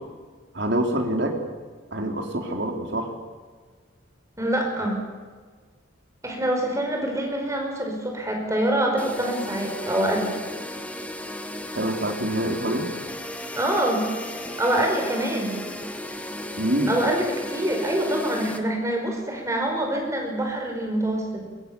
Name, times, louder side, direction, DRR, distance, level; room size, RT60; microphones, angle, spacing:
voice 1, 0.5-1.3 1.9-3.1 11.7-12.9 16.6-16.9, right 1 dB, 55° right, 3 dB, 3.6 m, -25 dB
voice 2, 4.4-5.0 6.2-10.4 13.5-14.0 14.6-15.6 16.9-21.4, right 1 dB, 15° right, 1 dB, 5.1 m, -25 dB
sound 1, 9.0-18.6, left 1 dB, 5° left, 1.4 m, -35 dB
23.0 x 21.5 x 7.1 m, 1.5 s
head